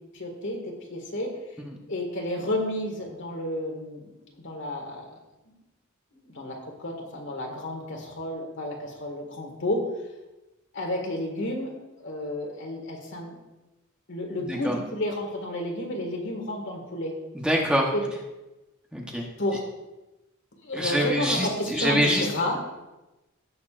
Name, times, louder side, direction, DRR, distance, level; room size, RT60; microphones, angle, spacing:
voice 1, 0.1-1.3 1.9-4.0 4.4-5.1 5.5-5.6 6.1-9.8 10.7-11.7 12.0-13.4 14.1-17.1 17.9-18.0 19.4-19.6 20.5-22.6, left 1 dB, 60° left, 1 dB, 2.0 m, -31 dB
voice 2, 17.3-17.9 18.9-19.3 20.7-22.3, equal, 5° right, -1 dB, 1.1 m, -25 dB
17.0 x 6.9 x 2.5 m, 1.0 s
head